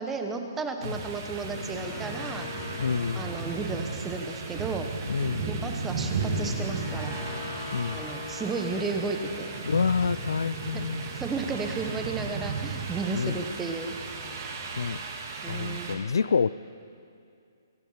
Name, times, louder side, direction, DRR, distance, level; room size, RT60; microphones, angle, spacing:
voice 1, 0.0-2.8 3.1-4.9 5.5-7.2 7.5-9.6 11.0-14.0 15.4-16.0, right 4 dB, 10° right, 5 dB, 1.0 m, -33 dB
sound 1, 0.8-16.0, right 4 dB, 45° right, 2.2 m, -35 dB
sound 2, 1.1-12.1, left 4 dB, 25° left, 1.7 m, -44 dB
voice 2, 2.8-3.3 5.1-5.5 7.7-8.0 9.6-11.1 13.1-13.4 14.8-15.0 15.5-16.5, left 5 dB, 85° left, 19 dB, 0.3 m, -27 dB
24.0 x 9.2 x 5.6 m, 2.5 s
hypercardioid pair, 160°, 2 cm